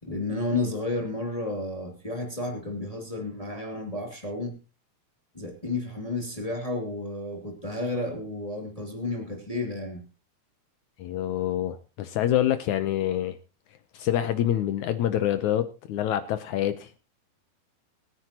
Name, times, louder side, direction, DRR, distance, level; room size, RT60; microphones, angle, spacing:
voice 1, 0.0-4.6 5.3-10.0, left 2 dB, 10° left, 2 dB, 1.9 m, -32 dB
voice 2, 11.0-13.4 13.9-16.9, left 11 dB, 85° left, 10 dB, 1.7 m, -26 dB
24.5 x 9.8 x 2.9 m, 0.30 s
omnidirectional pair, 4.5 m